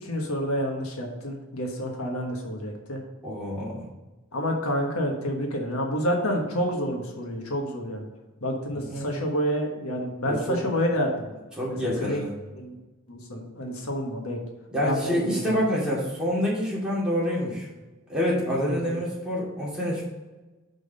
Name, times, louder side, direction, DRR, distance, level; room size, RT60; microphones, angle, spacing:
voice 1, 0.0-3.0 4.3-8.1 8.4-11.3 11.7-12.3 12.5-12.8 13.1-14.4 14.8-15.5 18.5-19.0, equal, 75° left, 1 dB, 1.4 m, -29 dB
voice 2, 3.2-3.9 8.7-9.1 10.3-10.6 11.6-12.3 14.7-17.7 18.1-20.0, equal, 5° right, -7 dB, 2.4 m, -27 dB
6.1 x 5.3 x 5.3 m, 1.2 s
head